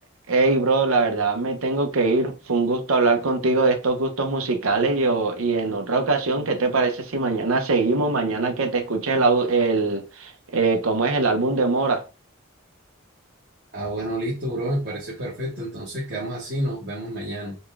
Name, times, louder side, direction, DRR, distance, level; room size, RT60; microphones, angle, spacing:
voice 1, 0.3-12.0, right 3 dB, 85° right, 0.8 m, -22 dB
voice 2, 13.7-17.6, right 1 dB, 50° right, 1.3 m, -29 dB
4.1 x 2.3 x 3.4 m
head